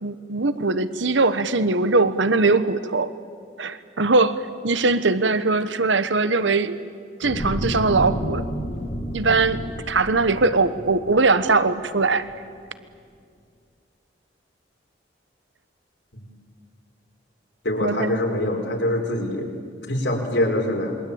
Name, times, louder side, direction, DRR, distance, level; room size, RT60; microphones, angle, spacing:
voice 1, 0.0-3.1 3.6-6.8 7.2-8.4 9.1-12.3 17.8-18.2, right 3 dB, 80° right, 13 dB, 1.2 m, -21 dB
sound 1, 7.2-11.7 12.2-12.3, equal, 55° left, 2.6 m, -30 dB
voice 2, 17.6-19.5 19.9-20.9, left 1 dB, 70° left, 1 dB, 4.8 m, -24 dB
27.0 x 23.5 x 8.8 m, 2.2 s
head